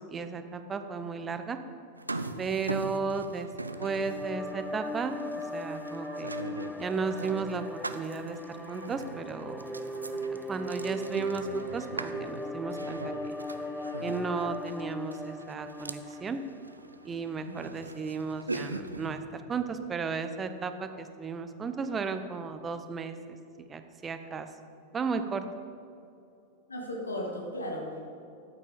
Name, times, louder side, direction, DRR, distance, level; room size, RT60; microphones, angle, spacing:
voice 1, 0.1-1.6 2.4-3.5 3.8-5.2 5.5-6.3 6.8-9.7 10.3-13.1 14.0-16.4 17.0-23.2 23.7-24.5 24.9-25.4, right 5 dB, 20° right, 9 dB, 0.8 m, -34 dB
sound 1, 2.0-19.2, right 2 dB, 80° right, 0.5 m, -42 dB
sound 2, 3.5-16.9, equal, 5° left, 0.4 m, -38 dB
voice 2, 26.7-28.2, left 1 dB, 80° left, 0 dB, 2.1 m, -36 dB
13.0 x 8.6 x 5.1 m, 2.6 s
figure-of-eight pair, 90°, 0 cm